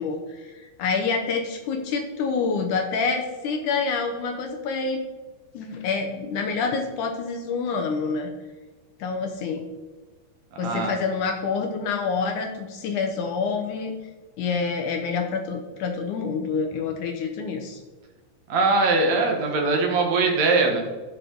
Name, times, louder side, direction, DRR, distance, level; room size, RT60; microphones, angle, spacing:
voice 1, 0.0-5.0 5.5-8.3 9.0-9.6 10.6-13.9 14.4-17.8, left 5 dB, 75° left, 4 dB, 1.9 m, -27 dB
voice 2, 10.6-10.9 18.5-20.8, right 3 dB, 60° right, 2 dB, 2.1 m, -21 dB
14.5 x 6.1 x 3.9 m, 1.3 s
omnidirectional pair, 4.6 m